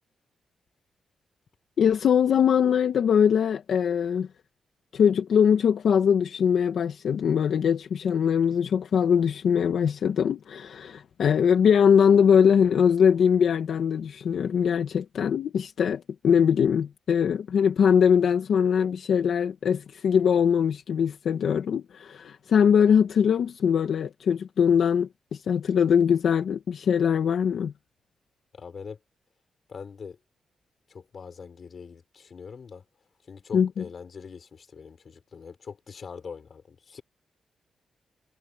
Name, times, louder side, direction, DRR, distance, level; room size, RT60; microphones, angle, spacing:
voice 1, 1.8-4.3 4.9-27.7 33.5-33.8, left 7 dB, 75° left, 1.4 m, -22 dB
voice 2, 28.5-29.0 29.7-30.2 30.9-32.8 33.3-37.0, left 5 dB, 50° left, 4.6 m, -42 dB
cardioid pair, 115°, 0 cm